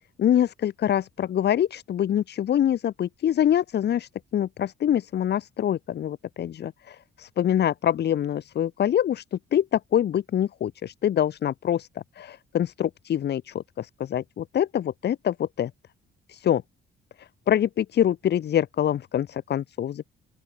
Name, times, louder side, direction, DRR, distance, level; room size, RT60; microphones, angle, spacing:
voice 1, 0.2-11.9 12.2-15.7 16.3-16.6 17.2-20.1, left 10 dB, 60° left, 1.0 m, -25 dB
open air
cardioid pair, 90°, 20 cm